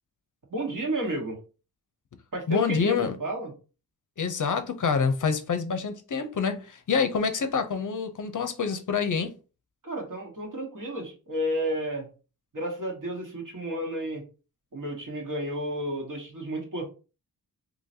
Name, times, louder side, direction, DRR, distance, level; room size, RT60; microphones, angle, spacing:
voice 1, 0.5-1.4 2.3-3.5 9.8-12.1 12.5-14.2 14.7-16.8, right 1 dB, 60° right, 1.5 m, -32 dB
voice 2, 2.5-3.2 4.2-9.3, left 5 dB, 55° left, 0.6 m, -27 dB
3.9 x 2.9 x 2.7 m
wide cardioid pair, 110°, 37 cm